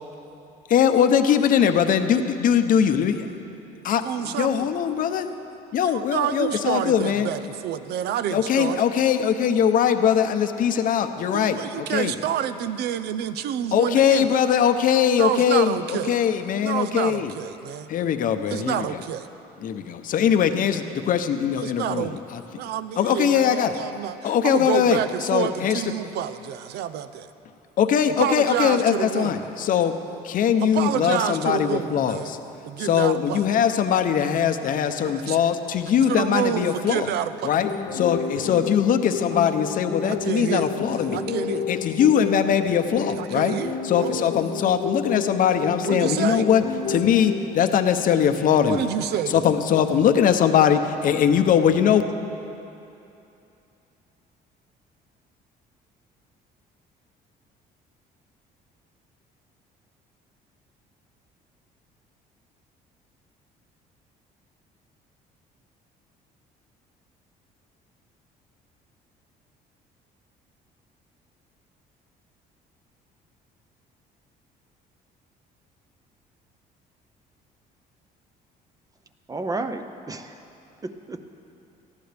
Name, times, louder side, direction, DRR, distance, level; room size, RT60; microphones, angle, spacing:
voice 1, 0.7-3.3 3.8-5.3 5.7-7.3 8.3-12.1 13.7-17.3 17.9-19.0 19.6-22.4 23.0-23.7 24.2-25.8 27.8-30.0 30.2-32.4 32.8-37.1 37.4-41.2 41.7-43.6 43.8-48.9 49.3-52.0, left 8 dB, 55° left, 8 dB, 0.7 m, -21 dB
voice 2, 4.0-4.6 5.8-8.9 11.3-14.3 15.2-16.1 16.6-17.9 18.5-19.3 21.6-22.2 22.6-27.3 28.2-29.4 30.6-32.3 32.7-33.4 35.1-35.4 36.1-37.5 40.0-41.7 43.2-44.2 45.8-46.5 48.7-49.5, right 10 dB, 75° right, 12 dB, 0.6 m, -28 dB
sound 1, 37.6-47.6, left 5 dB, 75° left, 1.1 m, -31 dB
voice 3, 79.3-80.4 80.8-81.2, right 2 dB, 20° right, 7 dB, 0.7 m, -32 dB
18.5 x 13.5 x 3.4 m, 2.8 s
cardioid pair, 110°, 17 cm